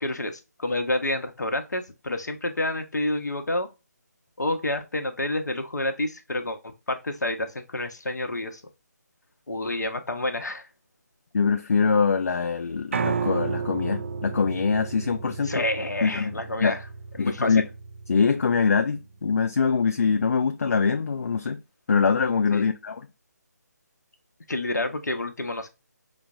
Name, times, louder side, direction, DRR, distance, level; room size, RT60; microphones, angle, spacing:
voice 1, 0.0-3.7 4.4-8.6 9.5-10.7 15.4-16.8 17.2-17.6 22.5-22.7 24.5-25.7, left 1 dB, 75° left, 0.7 m, -29 dB
voice 2, 11.3-15.6 16.0-16.7 17.2-17.6 18.1-21.6 21.9-23.1, left 5 dB, 55° left, 0.4 m, -23 dB
Piano, 12.9-19.1, right 5 dB, 45° right, 0.4 m, -33 dB
5.9 x 2.0 x 2.3 m
figure-of-eight pair, 150°, 10 cm